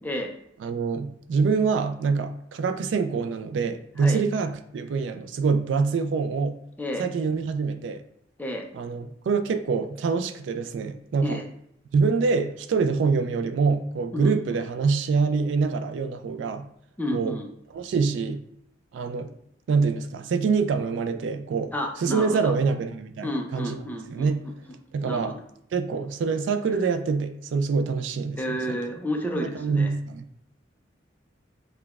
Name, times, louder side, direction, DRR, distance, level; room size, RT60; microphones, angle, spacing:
voice 1, 0.0-0.3 4.0-4.2 6.8-7.1 8.4-8.7 11.2-11.5 14.1-14.6 17.0-17.5 21.7-22.5 23.2-24.3 25.0-25.4 28.4-29.9, equal, 10° left, 2 dB, 0.4 m, -31 dB
voice 2, 0.6-6.5 7.0-8.0 8.7-11.4 11.9-16.6 17.1-17.4 17.7-18.4 18.9-19.3 19.7-21.7 22.0-23.8 24.1-24.4 24.9-25.3 25.7-28.8 29.3-30.3, right 4 dB, 80° right, 8 dB, 0.3 m, -25 dB
5.8 x 2.2 x 2.3 m, 0.75 s
head